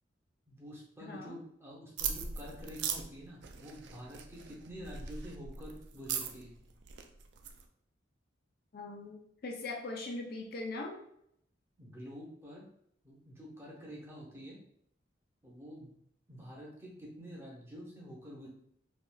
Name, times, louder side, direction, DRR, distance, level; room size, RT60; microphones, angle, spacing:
voice 1, 0.5-6.6 11.8-12.7 13.0-14.6 15.4-15.9 16.3-18.5, equal, 15° right, -4 dB, 0.7 m, -48 dB
voice 2, 1.0-1.4 8.7-11.0, left 2 dB, 50° left, 2 dB, 0.4 m, -41 dB
sound 1, 2.0-7.6, right 7 dB, 60° right, 0.3 m, -40 dB
3.3 x 2.5 x 2.3 m, 0.71 s
head